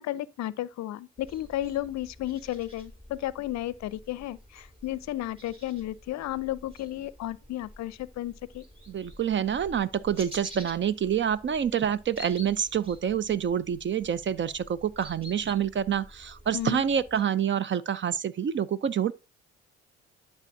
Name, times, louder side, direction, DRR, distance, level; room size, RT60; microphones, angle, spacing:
voice 1, 0.0-8.6 16.5-16.9, left 14 dB, 55° left, 0.6 m, -33 dB
sound 1, 1.2-17.2, equal, 15° right, 3.0 m, -49 dB
voice 2, 8.9-19.1, right 8 dB, 35° right, 0.6 m, -27 dB
11.5 x 5.4 x 2.6 m
hypercardioid pair, 55°, 34 cm